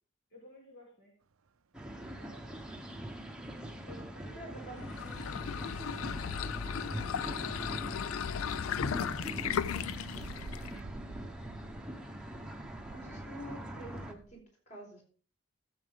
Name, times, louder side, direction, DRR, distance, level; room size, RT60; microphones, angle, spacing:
voice 1, 0.3-1.1 2.0-3.2 3.8-4.8 6.4-9.5 10.0-11.9, equal, 55° left, -2 dB, 2.7 m, -58 dB
sound 1, 1.7-14.1, equal, 5° right, 0.9 m, -43 dB
sound 2, 3.3-3.5 5.5-7.3 8.0-14.4, right 3 dB, 85° right, 0.6 m, -51 dB
voice 2, 4.3-5.7 12.9-15.0, right 1 dB, 35° left, 0 dB, 4.1 m, -48 dB
sound 3, 4.7-10.8, left 7 dB, 80° left, 0.4 m, -36 dB
14.5 x 8.0 x 3.5 m, 0.41 s
head